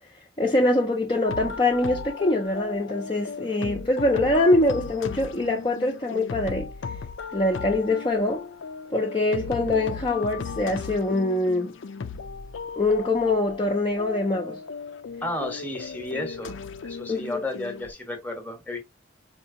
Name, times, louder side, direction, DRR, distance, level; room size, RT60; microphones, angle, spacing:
voice 1, 0.4-6.7 7.3-8.5 8.9-11.7 12.8-14.6 17.1-17.4, left 2 dB, 25° left, 0.6 m, -24 dB
sound 1, 1.2-17.9, left 5 dB, 80° left, 0.5 m, -36 dB
voice 2, 15.2-18.8, left 1 dB, 10° left, 0.9 m, -33 dB
4.4 x 2.8 x 2.6 m
head